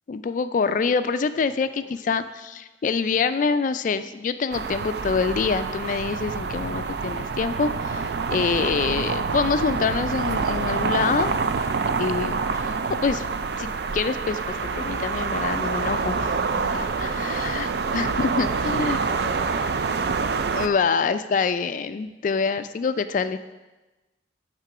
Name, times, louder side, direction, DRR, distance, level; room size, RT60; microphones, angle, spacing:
voice 1, 0.1-11.3 12.0-13.2 13.6-19.0 20.5-23.4, left 5 dB, 45° left, 12 dB, 0.3 m, -26 dB
voice 2, 1.5-2.2 17.1-17.3 18.9-19.7, equal, 10° right, 5 dB, 0.5 m, -44 dB
sound 1, 4.5-20.7, right 4 dB, 65° right, 0.4 m, -26 dB
9.0 x 3.7 x 5.9 m, 1.1 s
head